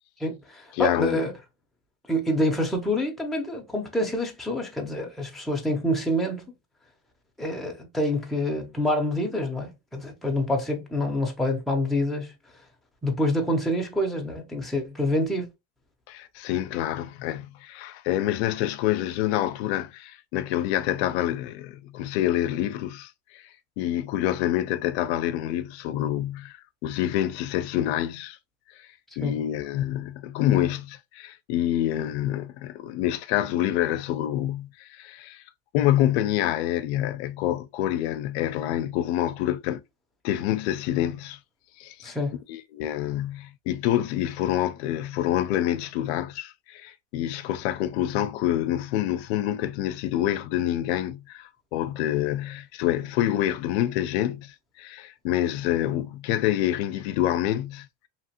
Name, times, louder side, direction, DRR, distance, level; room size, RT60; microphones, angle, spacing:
voice 1, 0.2-1.3 2.1-6.5 7.4-12.3 13.0-15.5 29.2-29.3 42.0-42.4, left 1 dB, ahead, 0.6 m, -27 dB
voice 2, 0.7-1.3 16.1-23.5 23.8-28.4 29.2-35.4 35.7-39.8 40.2-41.4 41.8-42.1 42.5-57.9, left 12 dB, 85° left, 0.5 m, -27 dB
2.9 x 2.5 x 2.8 m
supercardioid pair, 135°, 32 cm